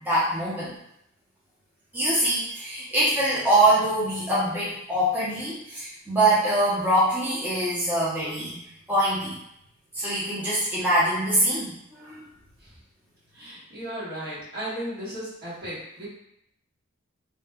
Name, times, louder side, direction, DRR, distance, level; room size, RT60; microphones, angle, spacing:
voice 1, 0.0-0.7 1.9-8.6 8.9-9.3 9.9-12.2, right 1 dB, 10° right, -8 dB, 0.6 m, -24 dB
voice 2, 13.3-16.1, equal, 55° right, -9 dB, 1.4 m, -35 dB
2.7 x 2.1 x 3.4 m, 0.77 s
head